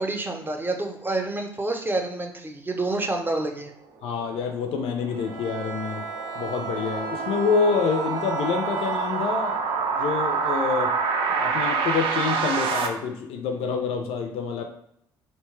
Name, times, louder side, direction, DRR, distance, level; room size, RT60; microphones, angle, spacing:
voice 1, 0.0-3.7, right 2 dB, 20° right, 3 dB, 0.7 m, -28 dB
voice 2, 4.0-6.1 6.3-10.9 11.3-14.6, left 5 dB, 65° left, 4 dB, 0.4 m, -27 dB
sound 1, 4.2-12.9, right 5 dB, 60° right, 0.5 m, -27 dB
Bowed string instrument, 5.1-10.1, right 4 dB, 90° right, 0.8 m, -36 dB
2.8 x 2.2 x 3.1 m, 0.74 s
hypercardioid pair, 55°, 10 cm